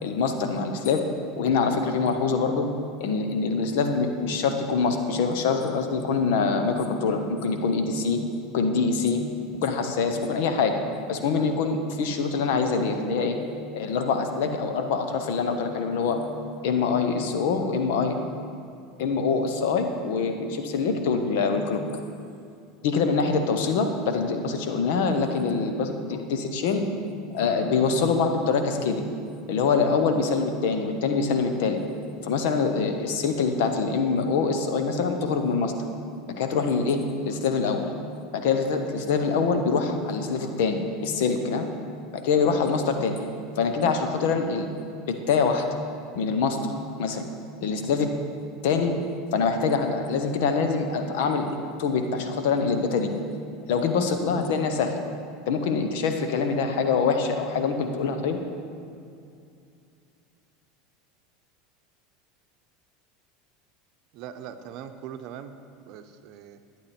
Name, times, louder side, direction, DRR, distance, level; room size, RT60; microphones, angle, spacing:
voice 1, 0.0-1.1 1.4-2.7 3.0-8.2 8.5-9.2 9.6-10.8 11.1-13.4 13.7-16.2 16.6-18.2 19.0-21.8 22.8-26.8 27.3-29.1 29.5-31.8 32.2-35.7 36.4-37.9 38.3-41.7 42.1-43.2 43.6-44.7 45.1-45.7 46.1-46.7 47.0-47.3 47.6-48.1 48.6-49.0 49.3-53.1 53.7-55.0 55.5-58.4, left 5 dB, 70° left, 6 dB, 1.1 m, -24 dB
voice 2, 64.1-65.5 65.8-66.6, right 9 dB, 60° right, 8 dB, 0.7 m, -41 dB
11.5 x 9.7 x 4.4 m, 2.4 s
hypercardioid pair, 90°, 0 cm